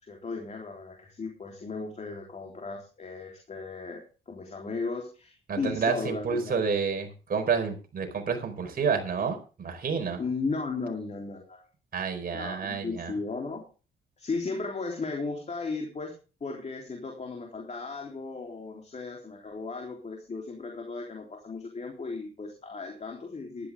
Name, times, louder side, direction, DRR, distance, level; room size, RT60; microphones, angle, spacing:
voice 1, 0.0-4.0 4.3-6.6 10.2-11.7 12.3-13.6 14.2-16.1 16.4-23.7, left 4 dB, 35° left, 1 dB, 3.6 m, -35 dB
voice 2, 5.5-10.2 11.9-13.1, right 5 dB, 50° right, 5 dB, 4.6 m, -29 dB
14.5 x 12.0 x 3.6 m, 0.35 s
cardioid pair, 90°, 20 cm